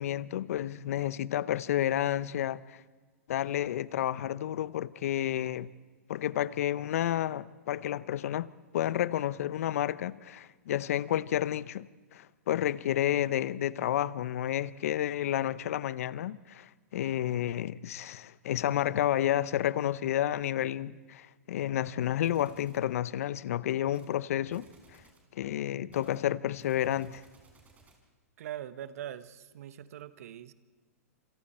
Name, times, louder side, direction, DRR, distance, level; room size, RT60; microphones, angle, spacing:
voice 1, 0.0-2.8 3.3-5.7 6.1-11.9 12.1-24.7 25.3-27.2, left 12 dB, 65° left, 0.7 m, -30 dB
sound 1, 22.2-22.9 23.8-24.1 24.5-25.3 25.9-28.1, right 3 dB, 15° right, 4.3 m, -61 dB
voice 2, 28.4-30.5, right 11 dB, 65° right, 1.1 m, -42 dB
27.0 x 27.0 x 4.3 m
hypercardioid pair, 115°, 8 cm